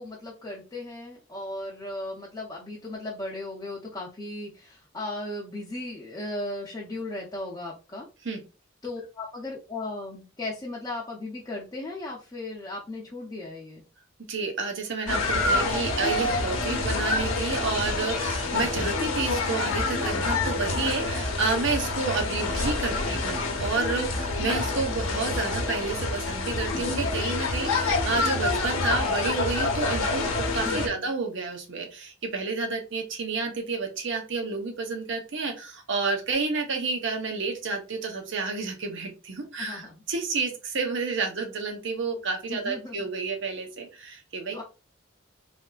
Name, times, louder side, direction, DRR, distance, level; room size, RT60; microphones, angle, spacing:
voice 1, 0.0-8.1 8.8-13.8 30.6-31.1 39.6-40.0 42.5-43.0 44.5-44.6, left 2 dB, 20° left, -3 dB, 0.6 m, -36 dB
voice 2, 14.3-44.6, right 4 dB, 60° right, 3 dB, 0.8 m, -30 dB
sound 1, 15.1-30.9, left 3 dB, 75° left, 0.8 m, -27 dB
3.4 x 2.6 x 2.4 m, 0.31 s
head